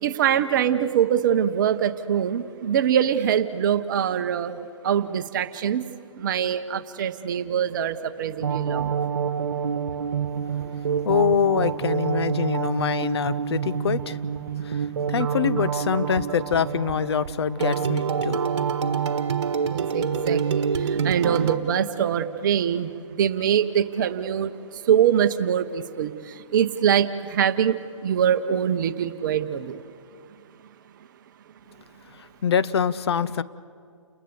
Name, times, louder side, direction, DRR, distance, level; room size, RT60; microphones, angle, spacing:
voice 1, 0.0-4.6 4.8-5.9 6.1-8.9 10.6-10.7 19.7-29.8, right 9 dB, 40° right, 11 dB, 1.1 m, -24 dB
sound 1, 8.4-21.6, right 6 dB, 60° right, 1.6 m, -27 dB
voice 2, 11.0-14.2 14.6-18.4 32.4-33.4, left 7 dB, 55° left, 14 dB, 0.8 m, -25 dB
29.5 x 20.0 x 7.1 m, 2.2 s
figure-of-eight pair, 140°, 17 cm